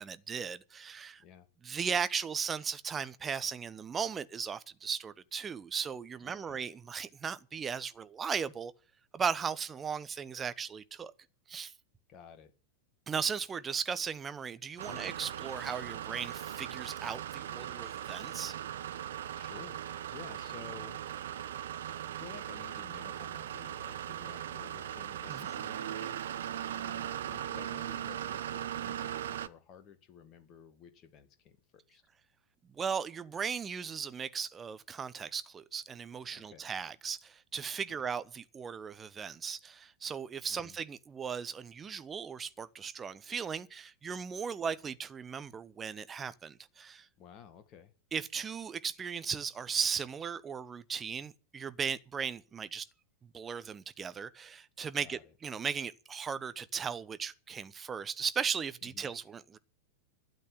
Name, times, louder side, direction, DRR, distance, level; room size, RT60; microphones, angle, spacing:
voice 1, 0.0-1.2 1.6-8.7 9.1-11.1 11.5-11.7 13.1-18.5 25.3-25.5 32.7-47.1 48.1-52.9 53.3-59.6, right 6 dB, 20° right, 0.9 m, -37 dB
voice 2, 6.2-6.6 12.1-12.5 14.8-15.1 19.4-19.8 20.1-21.3 22.1-26.1 26.7-32.0 36.3-36.7 40.5-40.8 47.2-47.9 55.0-55.3 58.8-59.1, left 8 dB, 35° left, 1.7 m, -53 dB
sound 1, 14.8-29.5, right 10 dB, 60° right, 0.8 m, -39 dB
12.5 x 8.2 x 9.3 m
figure-of-eight pair, 90°, 0 cm